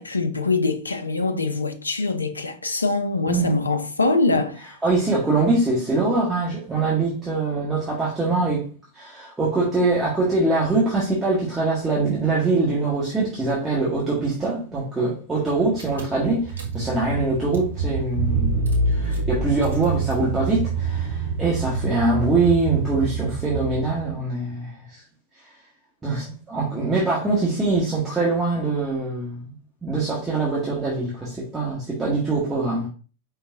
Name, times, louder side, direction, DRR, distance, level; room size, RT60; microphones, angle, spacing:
voice 1, 0.0-4.7, left 3 dB, 80° left, 0.5 m, -23 dB
voice 2, 3.3-3.6 4.3-4.4 4.8-8.6 8.9-18.6 18.9-24.7 26.0-29.5 29.8-32.9, right 3 dB, 10° right, 1.7 m, -23 dB
Car / Engine, 15.5-15.6 15.8-24.1, right 4 dB, 75° right, 1.3 m, -26 dB
5.2 x 3.9 x 2.6 m
figure-of-eight pair, 90°, 0 cm